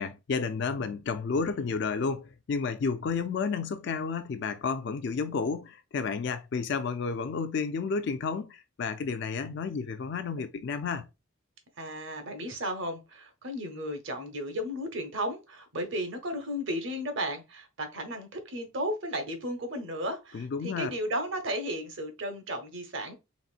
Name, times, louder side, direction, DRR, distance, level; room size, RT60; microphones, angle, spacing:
voice 1, 0.0-11.1 20.3-20.9, left 5 dB, 55° left, 0.3 m, -31 dB
voice 2, 11.8-23.1, equal, 55° right, 0.9 m, -34 dB
4.1 x 3.4 x 2.4 m
head